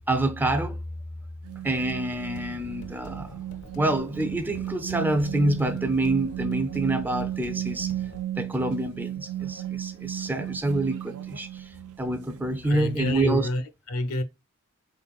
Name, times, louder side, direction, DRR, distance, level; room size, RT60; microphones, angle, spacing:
voice 1, 0.1-0.8 1.6-3.4 3.7-7.9 8.4-13.5, right 2 dB, 10° right, 0.4 m, -27 dB
sound 1, 1.4-13.3, right 12 dB, 80° right, 0.5 m, -35 dB
sound 2, 1.8-8.2, left 1 dB, 55° left, 0.6 m, -46 dB
voice 2, 12.6-14.2, left 1 dB, 85° left, 0.8 m, -28 dB
3.9 x 3.8 x 2.3 m
head